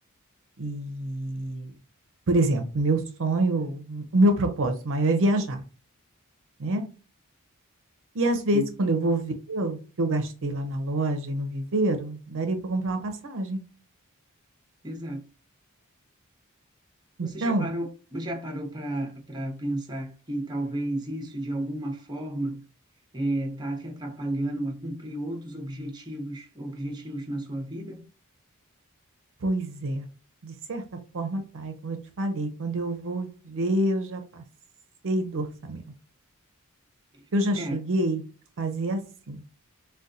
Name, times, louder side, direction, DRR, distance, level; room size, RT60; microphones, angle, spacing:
voice 1, 0.6-1.7 2.3-5.6 6.6-6.9 8.1-13.6 17.2-17.7 29.4-30.1 30.4-30.8 31.1-34.4 35.0-35.9 37.3-38.2 38.6-39.0 39.3-39.4, right 1 dB, 60° right, 0.5 m, -26 dB
voice 2, 14.8-15.2 17.2-22.6 23.1-28.0 37.1-37.2 37.6-37.8, right 1 dB, 20° right, 0.7 m, -32 dB
3.9 x 2.2 x 2.5 m
head